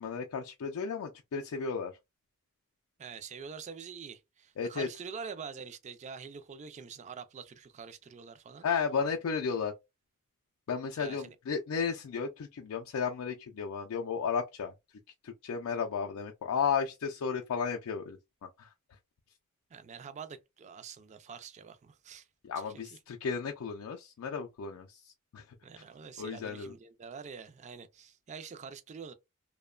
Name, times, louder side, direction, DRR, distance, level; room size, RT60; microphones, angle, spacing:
voice 1, 0.0-1.9 4.6-4.9 8.6-9.7 10.7-14.7 15.2-18.7 22.4-25.4 26.2-26.7, left 6 dB, 70° left, 0.4 m, -34 dB
voice 2, 3.0-8.6 10.9-11.4 19.7-22.3 22.7-22.8 25.6-29.1, right 6 dB, 30° right, 0.3 m, -45 dB
2.8 x 2.1 x 2.3 m
head